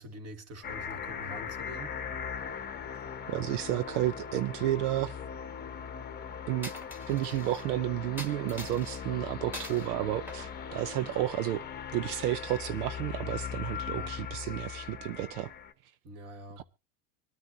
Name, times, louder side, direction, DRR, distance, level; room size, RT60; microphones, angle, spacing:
voice 1, 0.0-1.9 13.9-14.1 16.0-16.6, equal, 30° right, 1.8 m, -45 dB
sound 1, 0.6-15.7, left 7 dB, 20° left, 1.0 m, -40 dB
voice 2, 3.3-5.2 6.5-6.7 7.1-11.6 11.9-15.5 16.6-16.7, right 14 dB, 80° right, 0.7 m, -31 dB
Coin (dropping), 6.6-7.7 8.2-9.0 9.5-9.9 10.3-11.4, left 1 dB, 5° right, 1.6 m, -44 dB
25.0 x 9.7 x 2.7 m
supercardioid pair, 125°, 46 cm